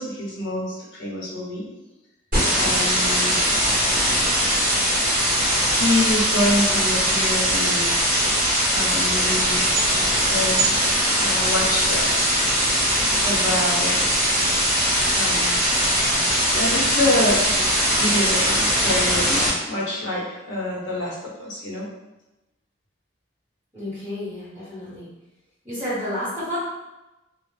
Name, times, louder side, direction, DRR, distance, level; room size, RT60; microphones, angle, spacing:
voice 1, 0.0-1.6 2.6-3.4 5.7-8.0 8.7-9.7 10.2-10.7 11.2-12.4 13.2-14.3 15.1-15.6 16.5-17.4 18.0-21.9, left 1 dB, 60° left, -5 dB, 0.7 m, -26 dB
sound 1, 2.3-19.5, equal, 40° right, 0.9 m, -21 dB
voice 2, 23.7-25.1 25.6-26.6, left 1 dB, 10° right, -16 dB, 1.1 m, -30 dB
2.2 x 2.0 x 3.0 m, 0.98 s
head